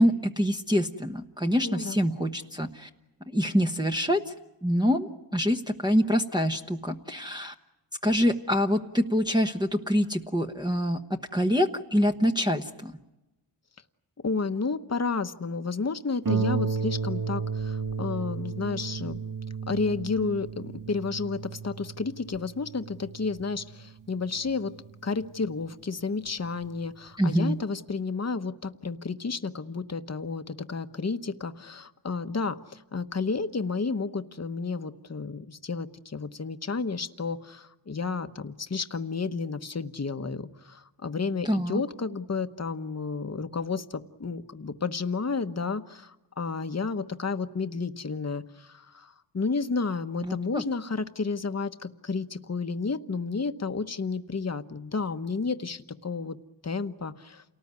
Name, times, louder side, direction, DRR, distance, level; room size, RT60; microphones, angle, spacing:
voice 1, 0.0-2.9 3.3-4.3 4.6-7.5 8.0-12.9 27.2-27.6 41.4-41.8 50.2-50.6, equal, 10° right, 2 dB, 1.1 m, -25 dB
voice 2, 1.6-2.0 14.2-19.2 19.7-24.7 25.0-56.4 56.6-57.4, left 4 dB, 35° left, 10 dB, 1.1 m, -31 dB
Harp, 16.2-25.4 26.3-26.4 26.8-26.9, right 5 dB, 45° right, 1.2 m, -33 dB
29.0 x 19.0 x 9.6 m, 1.0 s
wide cardioid pair, 85°, 45 cm